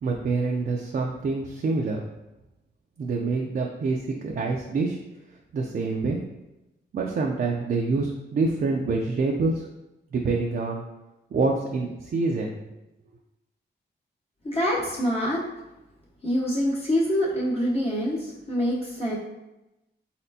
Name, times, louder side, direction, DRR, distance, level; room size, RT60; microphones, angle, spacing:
voice 1, 0.0-2.0 3.0-5.0 5.5-6.2 6.9-9.7 10.1-10.8 11.3-12.6, right 3 dB, 55° right, 0 dB, 0.5 m, -26 dB
voice 2, 14.4-15.4 16.2-19.2, equal, 35° left, -5 dB, 0.8 m, -25 dB
4.2 x 4.1 x 2.7 m, 0.95 s
wide cardioid pair, 155°, 18 cm